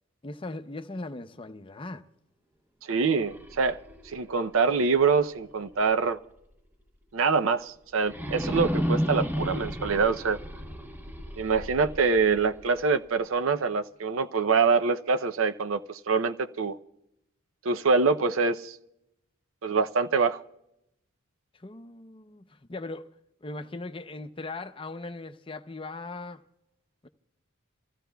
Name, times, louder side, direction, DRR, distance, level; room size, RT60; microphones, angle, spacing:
voice 1, 0.2-2.0 21.6-23.1 23.4-26.4 27.0-27.1, left 2 dB, 25° left, 0.6 m, -39 dB
voice 2, 2.9-3.8 4.1-6.2 7.1-10.4 11.4-16.8 17.6-18.8 19.6-20.4, right 4 dB, 75° right, 0.6 m, -25 dB
sound 1, 3.1-6.1 6.5-6.6 8.0-13.1, equal, 10° right, 0.7 m, -33 dB
28.0 x 15.0 x 2.3 m
head